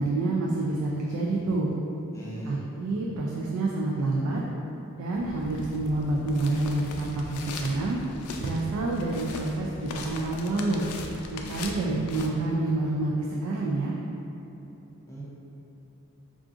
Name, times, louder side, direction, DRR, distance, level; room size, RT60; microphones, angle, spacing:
voice 1, 0.0-1.7 2.4-4.4 5.0-8.0 8.4-10.8 11.3-13.1 13.4-13.9, right 2 dB, 85° right, -3 dB, 0.3 m, -28 dB
voice 2, 2.1-2.6 11.7-12.0 15.1-15.2, right 1 dB, 15° left, -7 dB, 0.4 m, -38 dB
sound 1, 5.1-12.3, left 3 dB, 85° left, 0.3 m, -39 dB
3.6 x 2.4 x 2.4 m, 3.0 s
head